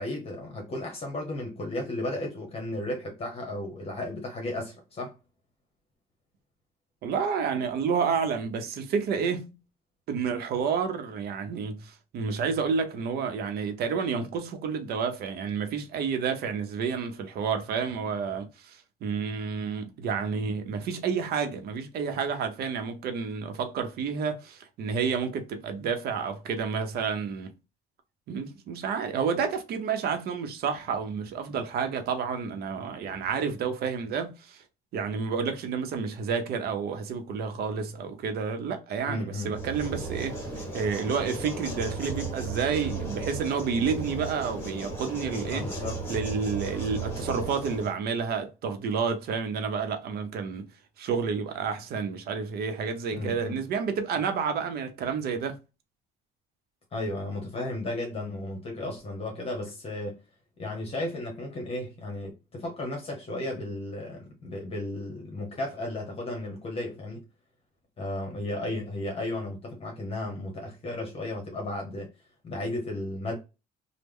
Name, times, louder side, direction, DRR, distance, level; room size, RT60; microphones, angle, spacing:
voice 1, 0.0-5.1 39.0-39.5 45.5-46.0 53.1-53.6 56.9-60.2 60.6-67.2 68.0-72.1 72.4-73.4, left 1 dB, 35° left, 1.0 m, -34 dB
voice 2, 7.0-9.5 10.1-27.5 28.3-34.6 34.9-45.7 46.1-50.7 51.0-55.6, right 6 dB, 65° right, 0.7 m, -30 dB
sound 1, 39.5-47.9, right 3 dB, 15° left, 1.4 m, -35 dB
3.1 x 2.1 x 3.5 m
cardioid pair, 110°, 17 cm